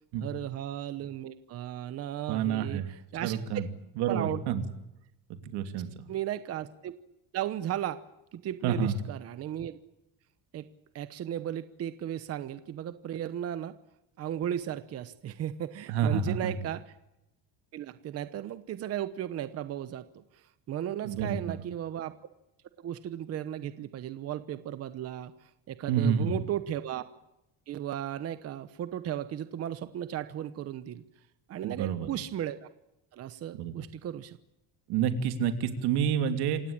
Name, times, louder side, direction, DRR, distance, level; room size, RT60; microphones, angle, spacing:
voice 1, 0.2-3.6 4.1-4.4 5.7-5.8 6.1-6.9 7.3-8.0 8.3-9.8 10.5-10.6 10.9-13.8 14.2-16.8 17.7-22.1 22.8-27.0 27.7-31.0 31.5-32.7 33.1-34.4, right 11 dB, 40° right, 12 dB, 1.0 m, -35 dB
voice 2, 2.3-2.9 3.2-3.7 4.0-4.6 5.4-6.0 8.6-8.9 15.9-16.5 21.0-21.5 25.9-26.4 31.6-32.1 33.6-33.8 34.9-36.6, right 7 dB, 90° right, 8 dB, 3.1 m, -29 dB
27.5 x 17.0 x 8.9 m, 0.88 s
cardioid pair, 175°, 38 cm